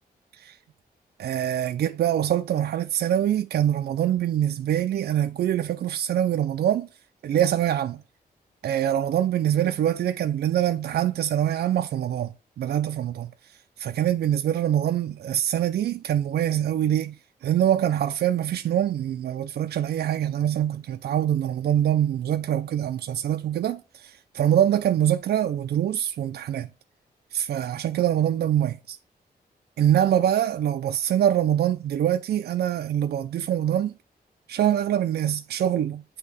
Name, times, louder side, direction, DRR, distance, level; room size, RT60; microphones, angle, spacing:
voice 1, 1.2-6.9 7.2-8.0 8.6-13.3 13.8-26.7 27.3-29.0 29.8-33.9 34.5-36.0, right 11 dB, 80° right, 0.4 m, -24 dB
8.3 x 2.9 x 4.0 m
wide cardioid pair, 140°, 17 cm